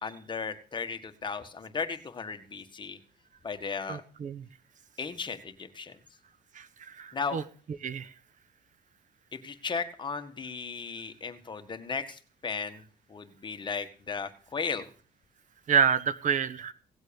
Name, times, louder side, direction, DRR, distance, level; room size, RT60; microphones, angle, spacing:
voice 1, 0.0-3.0 3.4-4.0 5.0-6.0 7.1-7.4 9.4-12.8 13.1-14.9, left 5 dB, 25° left, 7 dB, 1.7 m, -35 dB
voice 2, 3.9-4.4 6.5-7.4 7.8-8.1 15.7-16.7, right 6 dB, 50° right, 15 dB, 1.1 m, -28 dB
17.5 x 8.0 x 7.1 m, 0.40 s
cardioid pair, 110°, 17 cm